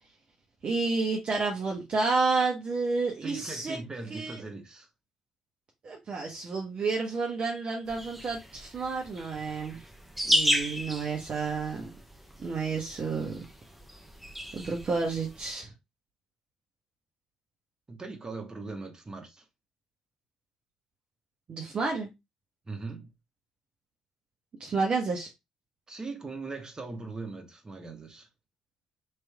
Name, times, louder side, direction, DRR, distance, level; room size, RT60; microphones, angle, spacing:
voice 1, 0.6-3.8 4.1-4.4 5.8-9.8 10.2-11.9 12.4-13.4 14.5-15.7 21.5-22.1 24.6-25.3, right 4 dB, 45° right, 0.9 m, -30 dB
voice 2, 3.2-4.9 17.9-19.4 22.7-23.1 25.9-28.3, right 3 dB, 25° right, 1.3 m, -40 dB
sound 1, 7.9-15.5, equal, 5° right, 0.9 m, -34 dB
3.3 x 3.1 x 3.4 m
hypercardioid pair, 50°, 3 cm